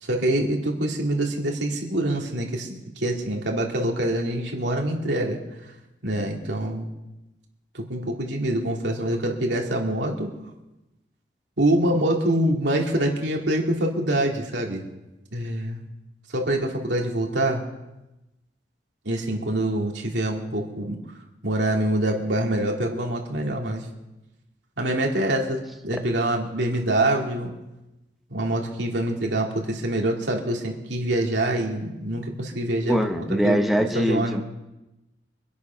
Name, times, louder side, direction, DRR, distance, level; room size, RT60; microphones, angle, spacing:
voice 1, 0.0-5.4 6.0-6.9 7.7-10.3 11.6-14.8 15.3-15.8 16.3-17.6 19.0-21.0 21.4-23.9 24.8-27.5 28.3-34.4, right 1 dB, 85° right, 0 dB, 2.8 m, -25 dB
voice 2, 32.9-34.4, equal, ahead, 4 dB, 0.9 m, -22 dB
24.5 x 8.4 x 6.0 m, 0.98 s
head